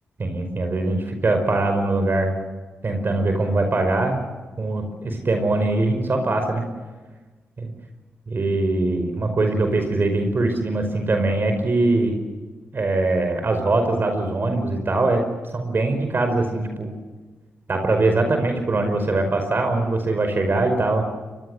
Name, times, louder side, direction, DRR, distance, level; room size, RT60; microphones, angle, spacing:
voice 1, 0.2-2.3 2.8-4.2 4.6-6.6 7.6-7.7 8.3-12.1 12.7-15.2 15.5-16.9 17.7-21.0, right 2 dB, 50° right, 6 dB, 5.2 m, -22 dB
23.5 x 21.5 x 8.1 m, 1.3 s
cardioid pair, 50°, 5 cm